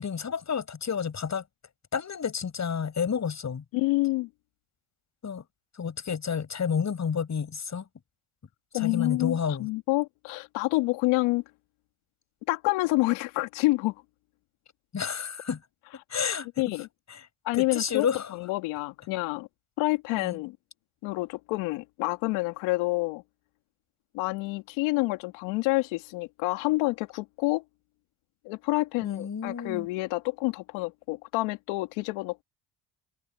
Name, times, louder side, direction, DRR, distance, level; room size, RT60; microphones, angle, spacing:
voice 1, 0.0-1.4 1.9-3.6 5.2-5.4 5.8-7.9 8.7-9.7 14.9-15.6 16.1-16.5 17.1-17.3 17.5-18.3 20.2-20.4 29.0-29.9, left 6 dB, 35° left, 7.2 m, -30 dB
voice 2, 3.7-4.3 8.7-11.4 12.5-14.0 16.6-16.9 17.4-18.1 18.3-19.5 19.8-20.6 21.0-23.2 24.1-27.6 28.4-32.4, left 22 dB, 85° left, 2.5 m, -28 dB
supercardioid pair, 85°, 46 cm